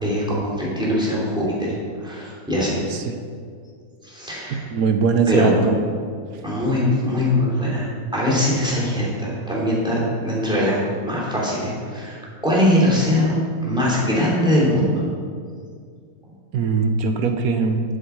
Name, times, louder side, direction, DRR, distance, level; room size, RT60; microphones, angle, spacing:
voice 1, 0.0-1.7 2.0-2.8 4.0-4.7 5.3-5.7 6.4-7.9 8.1-15.0, left 1 dB, 5° right, -6 dB, 3.0 m, -21 dB
voice 2, 4.5-5.8 16.5-17.8, right 5 dB, 70° right, 6 dB, 1.1 m, -20 dB
7.8 x 7.8 x 7.0 m, 2.1 s
omnidirectional pair, 1.8 m